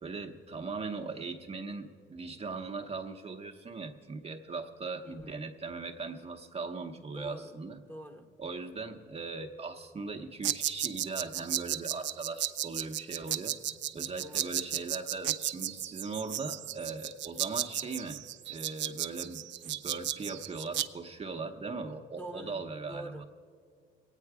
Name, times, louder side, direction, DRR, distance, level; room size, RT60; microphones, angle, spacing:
voice 1, 0.0-7.8 8.4-13.6 13.9-18.2 18.5-23.3, right 4 dB, 30° right, 4 dB, 0.8 m, -39 dB
voice 2, 5.0-5.4 7.1-7.6 7.9-8.3 14.2-14.5 22.2-23.3, right 1 dB, 10° left, 5 dB, 1.0 m, -46 dB
sound 1, 10.4-20.9, right 12 dB, 65° right, 0.5 m, -34 dB
21.5 x 9.0 x 4.8 m, 2.1 s
cardioid pair, 90°, 20 cm